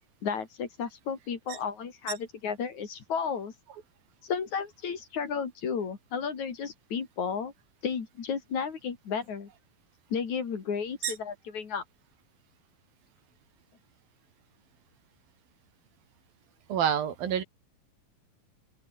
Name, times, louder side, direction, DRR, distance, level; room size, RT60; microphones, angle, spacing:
voice 1, 0.2-3.5 4.3-7.5 7.8-9.5 10.1-11.8, left 6 dB, 55° left, 4.3 m, -33 dB
voice 2, 16.7-17.4, right 8 dB, 85° right, 4.4 m, -27 dB
open air
omnidirectional pair, 4.0 m